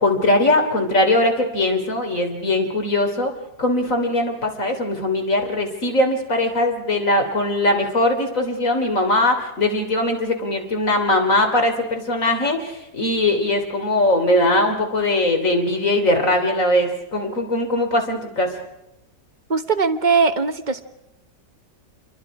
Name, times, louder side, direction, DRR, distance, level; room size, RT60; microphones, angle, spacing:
voice 1, 0.0-3.3 3.6-18.5, left 1 dB, 45° left, 4 dB, 3.6 m, -20 dB
voice 2, 19.5-20.8, right 4 dB, 30° right, 9 dB, 1.1 m, -20 dB
29.0 x 22.5 x 4.9 m, 0.92 s
omnidirectional pair, 1.9 m